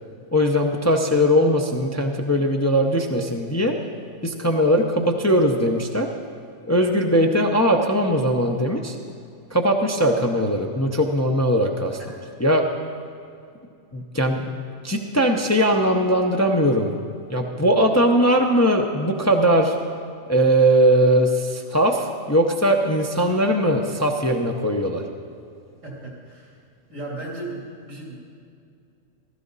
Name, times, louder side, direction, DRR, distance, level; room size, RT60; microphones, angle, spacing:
voice 1, 0.3-3.7 4.2-6.1 6.7-8.9 9.5-12.0 12.4-12.6 13.9-14.4 14.8-16.9 17.3-19.7 20.3-25.0, equal, 15° left, 2 dB, 0.6 m, -20 dB
voice 2, 12.0-12.3 25.8-26.6 26.9-28.2, right 2 dB, 85° right, -3 dB, 3.4 m, -36 dB
15.5 x 14.0 x 4.0 m, 2.4 s
omnidirectional pair, 1.3 m